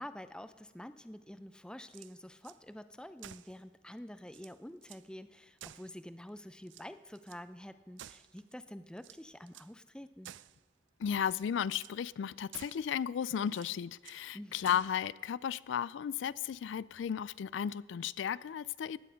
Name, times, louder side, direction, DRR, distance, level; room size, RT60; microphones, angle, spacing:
voice 1, 0.0-10.3 14.3-14.8, left 1 dB, 5° left, 0.5 m, -48 dB
sound 1, 1.8-2.6 3.2-3.6 4.0-4.1 4.3-5.1 5.6-6.3 6.6-7.4 8.0-8.5 9.0-9.8 10.2-10.6 11.1-11.5 11.8-12.0 12.5-12.9 13.5-14.3 14.6-15.0, right 11 dB, 80° right, 0.4 m, -53 dB
voice 2, 11.0-19.0, left 8 dB, 80° left, 0.3 m, -34 dB
16.0 x 10.0 x 5.1 m
head